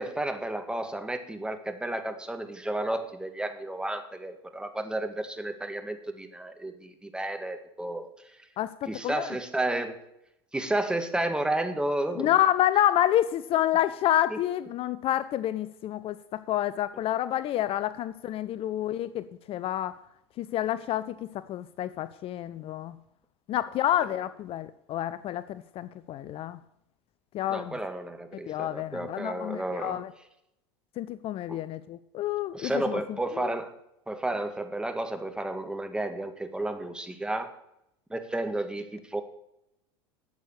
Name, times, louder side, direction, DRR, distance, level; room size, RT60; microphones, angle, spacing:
voice 1, 0.0-8.1 8.9-10.0 10.5-12.3 14.3-14.4 16.9-17.0 24.0-24.2 27.5-30.0 31.5-31.6 32.5-33.7 34.1-37.5 38.1-39.2, right 1 dB, 5° right, 7 dB, 1.9 m, -32 dB
voice 2, 8.6-9.3 12.2-19.9 20.4-23.0 23.5-26.6 27.3-27.8 28.5-30.1 31.0-33.0 33.3-33.5, left 12 dB, 45° left, 15 dB, 0.6 m, -28 dB
12.0 x 8.2 x 6.5 m, 0.80 s
hypercardioid pair, 80°, 14 cm